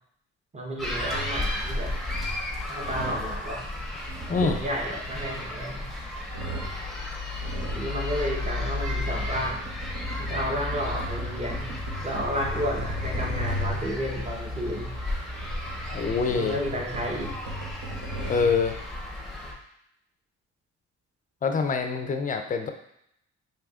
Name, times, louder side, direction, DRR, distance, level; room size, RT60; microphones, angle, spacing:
voice 1, 0.5-1.9 2.7-3.6 4.4-5.9 7.7-9.7 10.2-14.9 16.3-17.3, equal, 20° right, -2 dB, 1.0 m, -32 dB
sound 1, 0.8-19.5, left 2 dB, ahead, 0.8 m, -33 dB
sound 2, 1.0-1.4 1.9-2.4 2.8-3.4 3.9-5.9 6.3-6.9 7.4-7.9 8.5-14.0 14.9-18.7, right 1 dB, 70° right, 1.0 m, -37 dB
voice 2, 15.9-16.6 18.3-18.8 21.4-22.7, left 5 dB, 25° left, 6 dB, 0.4 m, -25 dB
4.6 x 2.7 x 2.4 m, 0.75 s
cardioid pair, 90°, 30 cm